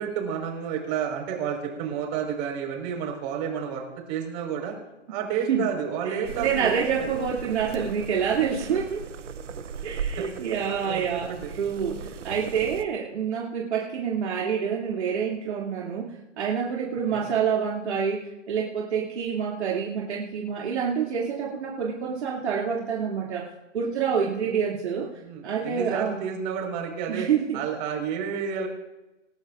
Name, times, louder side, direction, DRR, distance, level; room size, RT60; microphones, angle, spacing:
voice 1, 0.0-4.8 5.1-6.7 7.0-7.1 9.8-9.9 10.1-10.2 10.6-11.5 17.1-17.3 24.4-24.5 25.2-28.7, right 7 dB, 35° right, 2 dB, 5.1 m, -31 dB
voice 2, 6.0-9.1 9.8-23.5 23.7-25.1 25.4-26.2 27.1-27.6, right 7 dB, 65° right, -4 dB, 2.9 m, -27 dB
the process of cooking frying lids gurgling, 6.2-12.8, right 6 dB, 80° right, 1.0 m, -37 dB
27.0 x 13.0 x 2.6 m, 1.0 s
hypercardioid pair, 135°, 36 cm